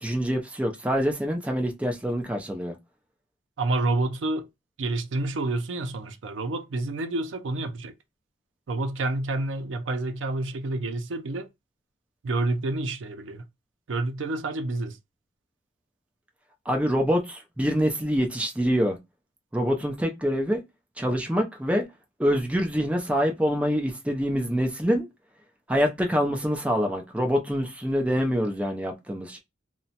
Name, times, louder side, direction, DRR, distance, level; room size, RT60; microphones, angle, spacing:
voice 1, 0.0-2.7 16.7-19.0 19.5-20.6 21.0-21.9 22.2-25.1 25.7-29.4, equal, 5° right, 0.4 m, -25 dB
voice 2, 3.6-4.5 4.8-7.9 8.7-11.5 12.2-13.4 13.9-15.0, right 2 dB, 80° right, 0.5 m, -28 dB
2.8 x 2.1 x 2.7 m
head